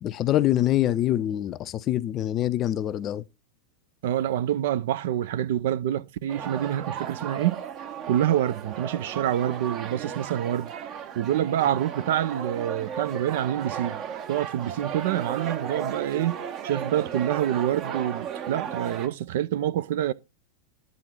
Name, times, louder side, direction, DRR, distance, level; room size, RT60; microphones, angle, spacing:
voice 1, 0.0-3.2, left 13 dB, 30° left, 0.5 m, -25 dB
voice 2, 4.0-7.6 8.1-10.7 11.2-14.0 14.3-20.1, right 11 dB, 55° right, 0.4 m, -26 dB
sound 1, 6.3-19.1, right 8 dB, 35° right, 0.9 m, -35 dB
9.7 x 3.7 x 5.9 m
figure-of-eight pair, 90°, 0 cm